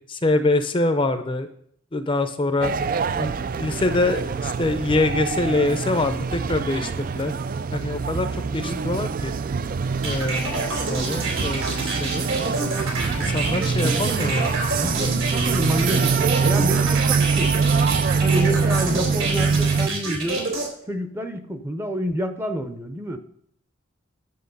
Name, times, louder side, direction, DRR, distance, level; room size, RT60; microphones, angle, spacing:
voice 1, 0.1-1.5 1.9-2.7 3.2-7.3 7.7-9.3 10.0-12.3 13.2-14.5, left 2 dB, 25° left, 9 dB, 0.6 m, -25 dB
sound 1, 2.6-19.9, right 5 dB, 45° right, 0.3 m, -24 dB
sound 2, 10.0-20.7, right 2 dB, 75° right, 3.5 m, -28 dB
voice 2, 13.8-14.3 14.7-17.5 18.2-20.6 20.9-23.2, equal, 10° right, 8 dB, 0.6 m, -28 dB
10.5 x 7.0 x 5.4 m, 0.67 s
head